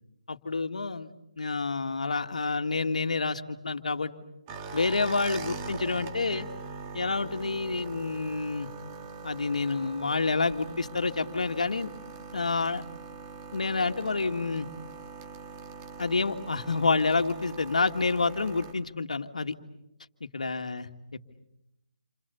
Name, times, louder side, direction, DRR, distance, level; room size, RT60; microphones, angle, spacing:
voice 1, 0.3-4.1 4.7-6.5 6.9-8.7 9.2-11.9 12.3-12.8 13.5-14.7 16.0-19.5 20.2-20.9, left 4 dB, 85° left, 6 dB, 2.0 m, -28 dB
sound 1, 4.5-18.7, right 5 dB, 20° right, 1.7 m, -42 dB
29.0 x 27.0 x 7.1 m, 0.86 s
hypercardioid pair, 165°, 4 cm